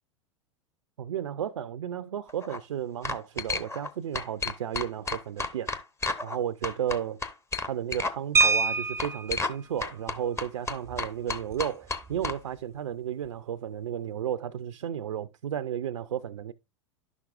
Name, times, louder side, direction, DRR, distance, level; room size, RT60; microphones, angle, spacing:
voice 1, 1.0-5.7 6.2-7.2 7.7-16.5, right 9 dB, 85° right, 0.4 m, -33 dB
sound 1, 2.3-2.6 3.0-3.9 4.1-6.4 6.6-8.1 8.4-8.5 9.0-9.6 9.8-12.4, left 3 dB, 15° left, 0.8 m, -32 dB
sound 2, 8.3-9.4 10.9-11.0 11.3-11.5 11.9-12.2, right 4 dB, 15° right, 0.4 m, -25 dB
11.0 x 6.0 x 2.4 m
hypercardioid pair, 95°, 16 cm